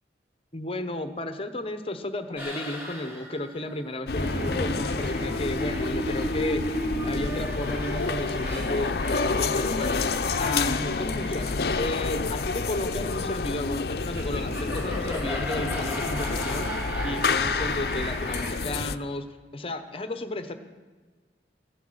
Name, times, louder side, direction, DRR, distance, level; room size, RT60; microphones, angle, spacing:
voice 1, 0.5-6.6 7.0-10.0 10.4-16.7 17.0-19.3 19.5-20.5, left 2 dB, 30° left, 9 dB, 0.9 m, -33 dB
sound 1, 2.4-18.5, equal, 10° right, 4.0 m, -35 dB
sound 2, 4.1-19.0, left 4 dB, 60° left, 0.6 m, -29 dB
16.0 x 11.5 x 7.9 m, 1.4 s
head